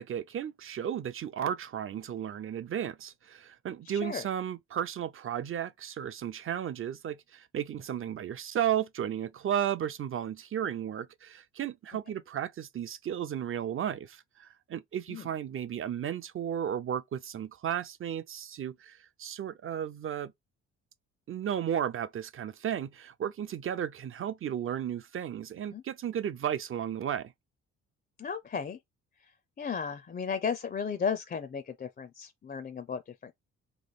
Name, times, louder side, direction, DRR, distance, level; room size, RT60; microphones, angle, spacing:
voice 1, 0.0-20.3 21.3-27.3, right 9 dB, 45° right, 0.6 m, -34 dB
voice 2, 3.9-4.3 15.1-15.2 25.7-25.8 28.2-28.8 29.6-33.3, left 6 dB, 30° left, 0.5 m, -34 dB
3.2 x 3.0 x 4.1 m
cardioid pair, 90°, 30 cm